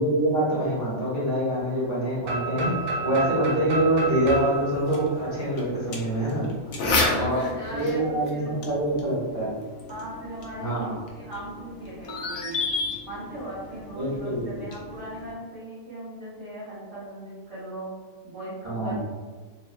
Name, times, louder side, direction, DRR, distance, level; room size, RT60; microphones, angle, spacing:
voice 1, 0.0-2.7 3.0-6.5 7.1-7.4 7.7-9.6 10.6-10.9 13.9-14.5 18.6-19.0, right 1 dB, 15° right, -11 dB, 0.9 m, -25 dB
sound 1, 2.2-6.1, right 1 dB, 85° right, 1.2 m, -31 dB
sound 2, 4.3-15.3, left 3 dB, 70° left, 1.0 m, -33 dB
voice 2, 6.6-8.5 9.9-12.6 13.0-17.9 18.2-19.0, right 1 dB, 45° right, -11 dB, 1.2 m, -38 dB
2.9 x 2.4 x 2.4 m, 1.4 s
omnidirectional pair, 1.6 m